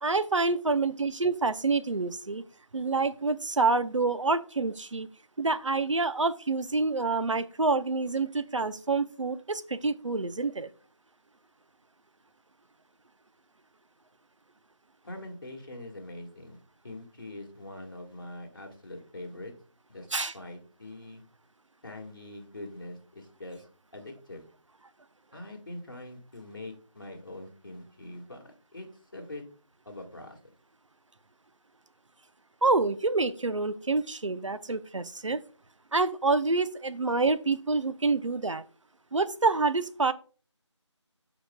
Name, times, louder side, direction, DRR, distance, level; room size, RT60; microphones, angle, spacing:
voice 1, 0.0-2.4 2.7-5.1 5.4-10.7 20.1-20.3 32.6-35.4 35.9-38.6 39.1-40.1, right 3 dB, 80° right, 13 dB, 0.7 m, -27 dB
voice 2, 15.0-16.6 16.8-19.5 19.9-20.1 20.3-21.2 21.8-23.7 23.9-24.4 25.3-28.9 29.1-29.4 29.9-30.4, left 1 dB, 45° left, 2 dB, 1.8 m, -43 dB
13.5 x 5.0 x 2.3 m, 0.39 s
figure-of-eight pair, 175°, 16 cm